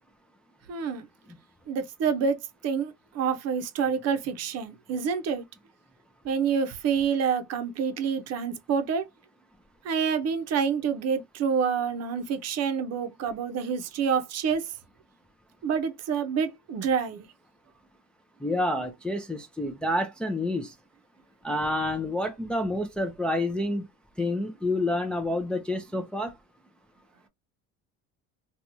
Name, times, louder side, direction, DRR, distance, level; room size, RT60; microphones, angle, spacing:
voice 1, 0.7-1.1 1.7-2.4 2.6-5.4 6.2-9.0 9.8-14.7 15.6-17.3, right 6 dB, 55° right, 0.7 m, -27 dB
voice 2, 18.4-20.7 21.4-23.9 24.2-26.3, left 1 dB, 5° left, 0.4 m, -28 dB
2.9 x 2.3 x 2.6 m
cardioid pair, 115°, 31 cm